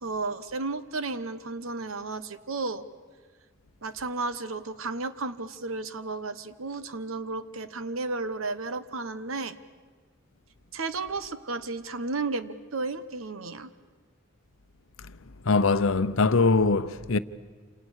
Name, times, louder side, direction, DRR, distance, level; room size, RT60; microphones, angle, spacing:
voice 1, 0.0-2.8 3.8-9.6 10.7-13.7, right 3 dB, 75° right, 1.1 m, -33 dB
voice 2, 15.4-17.2, left 3 dB, 70° left, 0.8 m, -22 dB
28.0 x 27.0 x 6.5 m
head